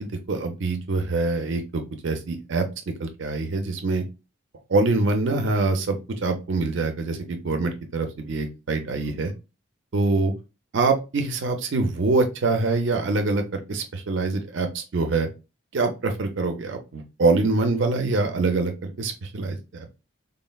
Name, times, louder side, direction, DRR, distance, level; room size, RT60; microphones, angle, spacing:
voice 1, 0.0-4.0 4.7-9.3 9.9-10.3 10.7-15.3 15.7-20.0, right 3 dB, 65° right, 5 dB, 0.5 m, -25 dB
3.6 x 2.1 x 2.2 m, 0.28 s
head